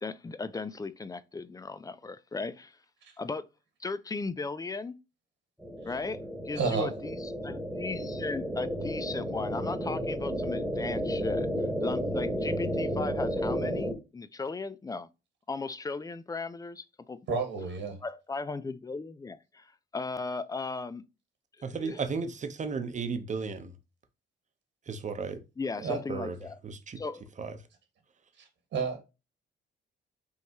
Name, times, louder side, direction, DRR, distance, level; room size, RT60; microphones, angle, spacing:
voice 1, 0.0-2.7 3.2-3.5 3.8-5.0 5.8-6.2 6.5-7.2 7.4-11.5 11.8-15.1 15.5-17.2 18.0-19.7 19.9-21.0 21.6-22.0 25.6-26.6 27.0-27.2, left 3 dB, 20° left, 0.4 m, -36 dB
sound 1, 5.6-13.9, equal, ahead, 1.4 m, -32 dB
voice 2, 6.5-6.9 17.3-18.0 25.8-26.0 28.4-28.5 28.7-29.0, right 5 dB, 75° right, 1.6 m, -30 dB
voice 3, 21.6-23.7 24.9-25.4 26.1-26.3 26.6-27.0 27.4-27.5, right 5 dB, 40° right, 0.9 m, -34 dB
5.5 x 3.1 x 2.9 m
cardioid pair, 90°, 20 cm